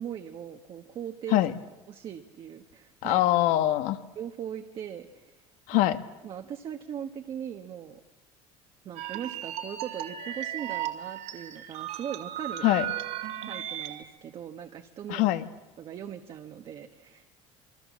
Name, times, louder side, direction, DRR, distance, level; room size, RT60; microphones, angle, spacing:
voice 1, 0.0-1.4 1.9-3.2 4.2-5.4 5.7-5.8 6.2-8.0 8.8-12.6 13.4-15.2 15.8-17.3, right 9 dB, 40° right, 5 dB, 1.4 m, -39 dB
voice 2, 3.0-4.0 5.7-6.0 12.6-12.8 15.1-15.4, left 15 dB, 70° left, 11 dB, 1.5 m, -23 dB
sound 1, 9.0-14.0, right 11 dB, 65° right, 2.6 m, -36 dB
27.5 x 22.5 x 7.5 m, 1.2 s
cardioid pair, 140°, 13 cm